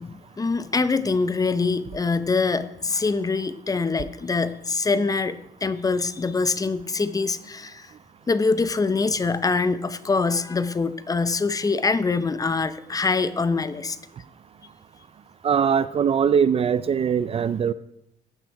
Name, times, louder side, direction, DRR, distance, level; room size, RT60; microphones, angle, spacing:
voice 1, 0.0-7.9 8.3-14.0, left 4 dB, 20° left, 14 dB, 0.7 m, -24 dB
voice 2, 15.4-17.7, right 7 dB, 35° right, 16 dB, 0.5 m, -21 dB
14.5 x 8.9 x 4.6 m, 0.80 s
cardioid pair, 110°, 17 cm